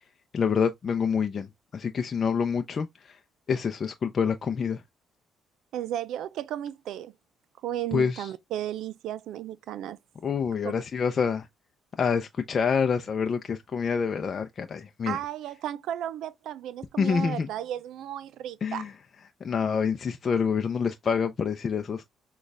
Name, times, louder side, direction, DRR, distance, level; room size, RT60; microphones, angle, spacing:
voice 1, 0.3-3.2 3.5-4.8 7.9-8.3 10.2-11.5 12.0-15.2 17.0-17.5 18.6-18.9 19.4-22.0, left 6 dB, 45° left, 0.5 m, -27 dB
voice 2, 5.7-7.1 7.6-10.0 15.1-18.9, right 11 dB, 80° right, 0.4 m, -34 dB
6.3 x 2.4 x 3.3 m
cardioid pair, 85°, 0 cm